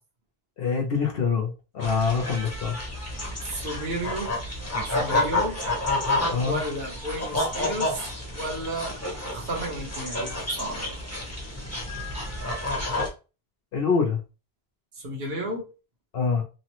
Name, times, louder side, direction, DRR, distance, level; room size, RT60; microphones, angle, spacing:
voice 1, 0.6-2.8 6.3-6.6 13.7-14.2 16.1-16.4, left 5 dB, 70° left, 0.8 m, -25 dB
sound 1, 1.8-13.1, left 2 dB, 15° left, 0.8 m, -30 dB
voice 2, 3.4-4.3 4.9-5.6 6.5-8.9 9.3-11.0 15.0-15.7, right 1 dB, 70° right, 1.1 m, -32 dB
3.0 x 2.0 x 2.9 m
omnidirectional pair, 1.0 m